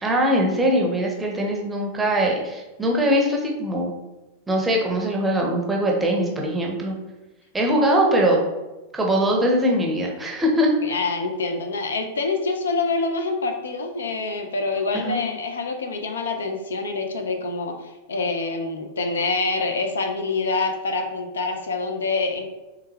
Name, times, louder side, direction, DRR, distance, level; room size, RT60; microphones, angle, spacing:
voice 1, 0.0-3.9 4.5-6.9 7.5-8.4 8.9-10.7 14.9-15.2, equal, 10° right, -1 dB, 0.6 m, -21 dB
voice 2, 10.8-22.5, left 3 dB, 70° left, 4 dB, 0.3 m, -26 dB
3.4 x 2.2 x 3.1 m, 1.1 s
figure-of-eight pair, 90°, 0 cm